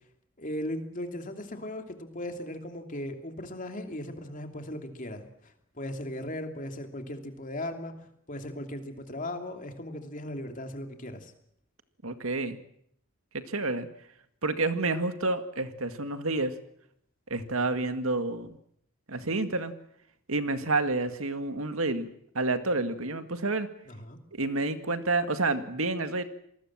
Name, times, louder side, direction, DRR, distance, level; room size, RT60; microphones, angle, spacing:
voice 1, 0.4-11.3 23.9-24.2, left 1 dB, 40° left, 5 dB, 2.9 m, -38 dB
voice 2, 12.0-12.6 13.3-13.9 14.4-16.5 17.3-18.6 19.1-19.7 20.3-23.7 24.3-26.2, right 2 dB, 85° right, 9 dB, 2.1 m, -29 dB
27.0 x 20.0 x 7.5 m, 0.71 s
head